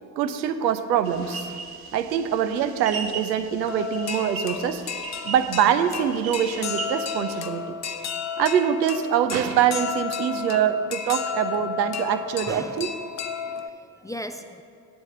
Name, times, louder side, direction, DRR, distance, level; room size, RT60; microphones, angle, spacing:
voice 1, 0.2-1.5 1.9-4.8 5.3-7.6 8.4-12.9, right 9 dB, 85° right, 10 dB, 0.6 m, -24 dB
sound 1, 0.6-0.7 1.0-1.8 3.1-3.2 3.7-13.7, left 6 dB, 35° left, 0.7 m, -33 dB
sound 2, 1.1-7.5, right 4 dB, 45° right, 1.2 m, -38 dB
voice 2, 12.5-12.9 13.4-14.6, left 1 dB, 10° left, 7 dB, 0.3 m, -38 dB
8.4 x 7.0 x 7.7 m, 2.3 s
figure-of-eight pair, 45°, 50 cm